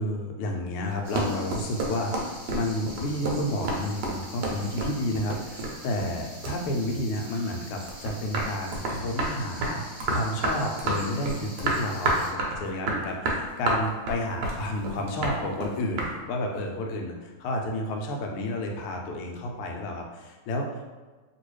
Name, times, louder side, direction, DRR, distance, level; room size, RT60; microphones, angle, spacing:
voice 1, 0.0-9.8 10.1-20.9, left 1 dB, 85° left, 2 dB, 1.5 m, -31 dB
sound 1, 0.8-6.2 6.4-7.5 7.9-16.1, right 2 dB, 70° right, 1.0 m, -29 dB
sound 2, 1.0-12.3, equal, 50° right, 1.1 m, -45 dB
3.0 x 2.9 x 3.0 m, 1.3 s
omnidirectional pair, 2.4 m